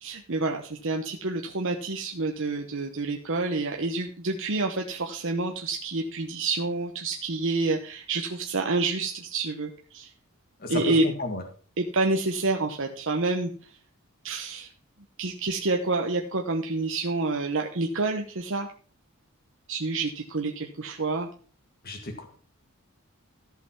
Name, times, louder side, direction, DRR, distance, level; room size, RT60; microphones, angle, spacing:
voice 1, 0.0-10.1 10.7-11.0 11.8-13.5 14.2-14.7 15.2-18.7 19.7-21.3, right 3 dB, 60° right, 3 dB, 1.1 m, -28 dB
voice 2, 10.6-11.4 21.8-22.3, left 2 dB, 45° left, 4 dB, 1.8 m, -33 dB
14.5 x 5.6 x 5.8 m, 0.42 s
head